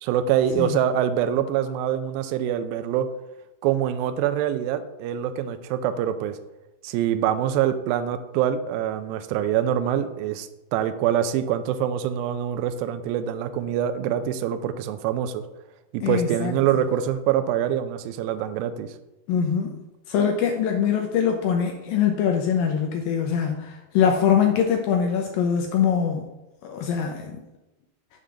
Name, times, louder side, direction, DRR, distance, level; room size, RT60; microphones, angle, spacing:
voice 1, 0.0-3.1 3.6-6.4 6.8-15.4 15.9-18.9, right 10 dB, 80° right, 10 dB, 2.1 m, -25 dB
voice 2, 16.0-16.8 19.3-19.8 20.1-26.3 26.6-27.4, left 7 dB, 85° left, 2 dB, 2.1 m, -23 dB
6.9 x 3.7 x 6.3 m, 0.96 s
omnidirectional pair, 4.7 m